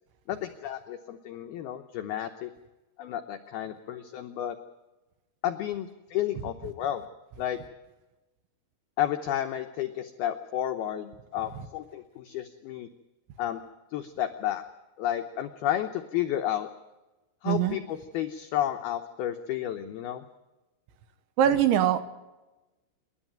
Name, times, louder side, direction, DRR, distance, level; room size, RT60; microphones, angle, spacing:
voice 1, 0.3-2.5 3.0-4.6 5.4-7.0 7.4-7.6 9.0-12.9 13.4-13.6 13.9-14.6 15.0-16.7 17.4-20.2, left 11 dB, 90° left, 6 dB, 2.1 m, -31 dB
voice 2, 17.5-17.8 21.4-22.0, right 10 dB, 75° right, 11 dB, 3.3 m, -22 dB
28.0 x 11.5 x 9.1 m, 1.1 s
omnidirectional pair, 5.8 m